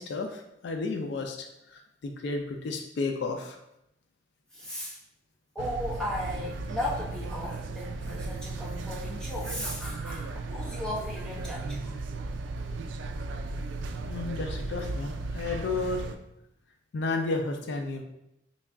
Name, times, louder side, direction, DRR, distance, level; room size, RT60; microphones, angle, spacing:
voice 1, 0.0-3.6 14.0-16.1 16.9-18.0, left 3 dB, 65° left, 4 dB, 0.3 m, -32 dB
voice 2, 4.5-5.0 5.5-12.0, left 1 dB, 5° left, -7 dB, 0.9 m, -36 dB
sound 1, 5.6-16.1, right 3 dB, 80° right, 0.3 m, -36 dB
4.0 x 2.3 x 3.4 m, 0.84 s
head